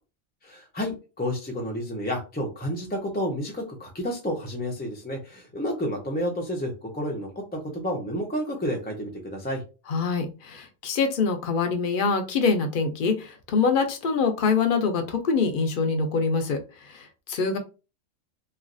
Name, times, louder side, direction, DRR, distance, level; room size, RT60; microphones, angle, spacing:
voice 1, 0.4-9.6, equal, 15° left, 0 dB, 0.4 m, -30 dB
voice 2, 9.9-17.6, left 5 dB, 55° left, 6 dB, 0.7 m, -25 dB
3.1 x 2.4 x 2.5 m, 0.30 s
omnidirectional pair, 1.2 m